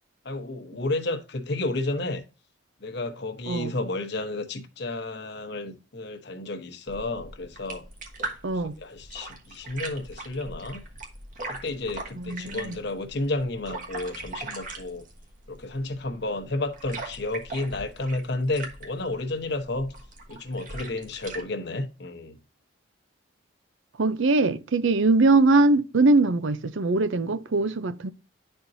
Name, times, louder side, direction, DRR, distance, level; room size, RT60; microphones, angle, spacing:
voice 1, 0.2-2.2 2.8-7.8 8.8-10.8 11.5-15.1 15.5-19.9 20.3-22.4, left 2 dB, 55° left, 1.0 m, -31 dB
sound 1, 6.9-21.4, right 3 dB, 40° right, 1.3 m, -40 dB
voice 2, 8.4-8.7 12.2-12.8 24.0-28.1, right 3 dB, 70° right, 0.6 m, -22 dB
11.0 x 4.4 x 2.6 m
head